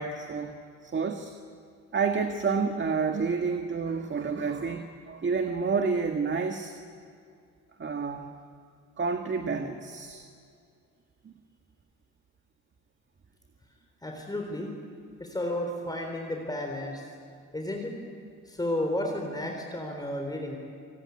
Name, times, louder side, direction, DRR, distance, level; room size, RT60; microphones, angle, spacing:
voice 1, 0.0-1.3 1.9-6.7 7.8-8.3 9.0-10.2 11.2-11.3, right 5 dB, 40° right, 5 dB, 1.8 m, -29 dB
voice 2, 14.0-14.7 15.2-17.0 17.5-17.9 18.5-20.6, left 1 dB, 15° left, 2 dB, 3.9 m, -32 dB
28.5 x 19.0 x 9.7 m, 2.3 s
cardioid pair, 90°, 30 cm